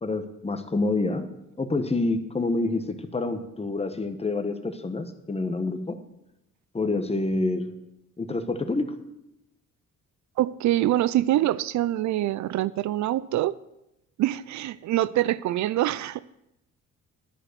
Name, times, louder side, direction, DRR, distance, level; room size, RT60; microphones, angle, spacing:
voice 1, 0.0-1.3 1.6-6.0 6.7-7.7 8.2-9.0, left 2 dB, 20° left, 1.2 m, -27 dB
voice 2, 10.4-13.6 14.2-16.2, right 14 dB, 70° right, 0.5 m, -25 dB
11.0 x 7.8 x 6.6 m
cardioid pair, 90°, 30 cm